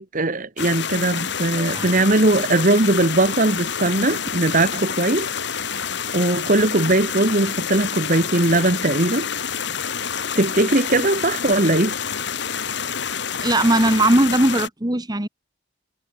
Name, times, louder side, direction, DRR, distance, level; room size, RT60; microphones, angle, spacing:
voice 1, 0.0-5.3 6.1-9.3 10.3-12.0, right 2 dB, 45° right, 1.6 m, -19 dB
sound 1, 0.6-14.7, left 7 dB, 60° left, 1.9 m, -28 dB
voice 2, 13.4-15.3, right 1 dB, 20° right, 1.5 m, -18 dB
head